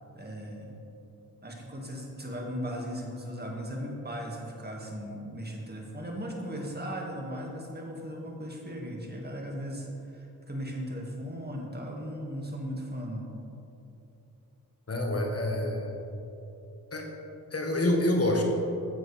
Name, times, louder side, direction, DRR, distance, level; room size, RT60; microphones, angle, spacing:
voice 1, 0.1-0.8 1.4-13.3, equal, 25° right, -1 dB, 1.9 m, -37 dB
voice 2, 14.9-15.9 16.9-17.0 17.5-18.4, left 1 dB, 40° left, 1 dB, 1.6 m, -27 dB
9.8 x 7.7 x 3.4 m, 2.8 s
supercardioid pair, 50°, 39 cm